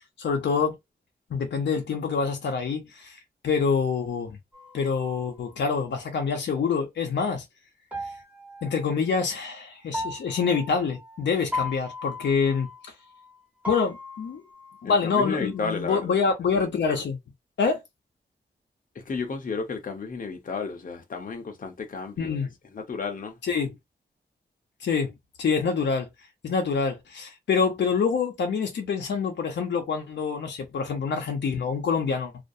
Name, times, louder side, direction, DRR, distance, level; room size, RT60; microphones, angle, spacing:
voice 1, 0.2-0.8 1.3-3.2 3.4-4.4 4.7-7.4 8.6-12.9 13.7-14.4 14.8-17.2 17.6-17.8 22.2-22.5 23.5-23.8 24.8-25.1 25.4-26.1 26.4-32.4, left 5 dB, 85° left, 0.6 m, -26 dB
sound 1, 4.5-6.2 7.9-9.5 9.9-13.4 13.6-15.8, left 2 dB, 10° right, 1.1 m, -38 dB
voice 2, 14.8-16.2 18.9-22.4 22.7-23.4, left 4 dB, 50° left, 0.7 m, -32 dB
2.4 x 2.1 x 2.6 m
wide cardioid pair, 80°, 18 cm